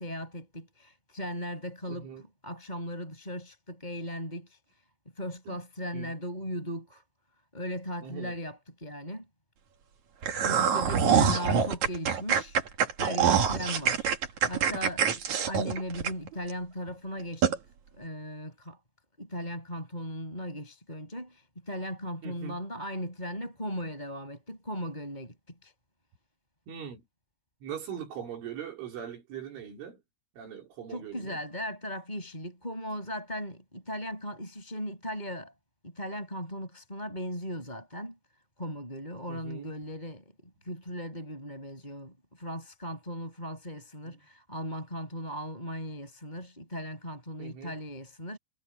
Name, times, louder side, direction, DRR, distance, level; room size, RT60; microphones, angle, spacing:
voice 1, 0.0-4.6 5.2-7.0 7.5-9.3 10.5-12.6 13.0-14.1 14.5-15.2 15.5-17.6 17.9-18.8 19.2-25.3 25.6-25.7 30.9-35.5 35.8-38.2 38.6-40.3 40.6-48.4, equal, 10° left, 7.4 m, -37 dB
voice 2, 1.9-2.2 5.5-5.6 5.9-6.1 8.0-8.3 10.4-11.5 22.2-22.6 26.7-27.0 27.6-30.0 30.4-31.4 39.3-39.7 44.1-44.2 47.4-47.8, right 8 dB, 80° right, 6.9 m, -41 dB
sound 1, 10.2-16.5 16.9-17.0 17.4-17.6, right 7 dB, 50° right, 2.9 m, -25 dB
omnidirectional pair, 5.4 m